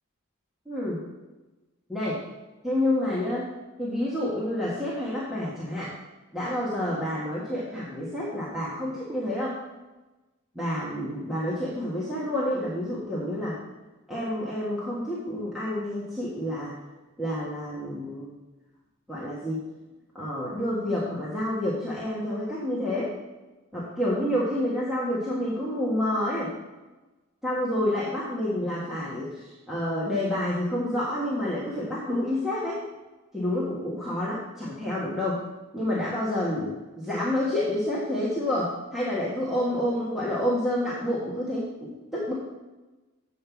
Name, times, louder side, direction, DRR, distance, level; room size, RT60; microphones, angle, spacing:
voice 1, 0.7-1.0 1.9-2.2 2.6-3.5 3.8-5.9 6.3-9.6 10.5-13.6 14.1-16.7 17.2-18.3 19.1-19.6 20.1-23.1 23.7-26.5 27.4-32.8 33.3-35.4 35.7-36.8 37.0-42.3, left 1 dB, ahead, -8 dB, 1.4 m, -28 dB
7.7 x 5.4 x 7.0 m, 1.1 s
head